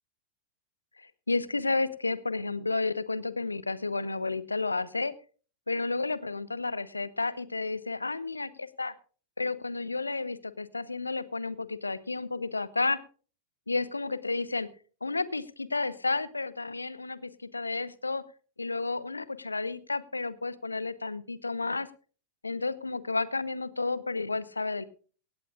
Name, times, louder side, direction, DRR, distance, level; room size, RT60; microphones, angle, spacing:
voice 1, 1.0-5.1 5.7-8.9 9.4-13.0 13.7-14.7 15.0-18.2 18.6-21.9 22.4-24.8, left 3 dB, 80° left, 17 dB, 0.9 m, -31 dB
17.0 x 16.5 x 2.4 m, 0.39 s
figure-of-eight pair, 90°, 0 cm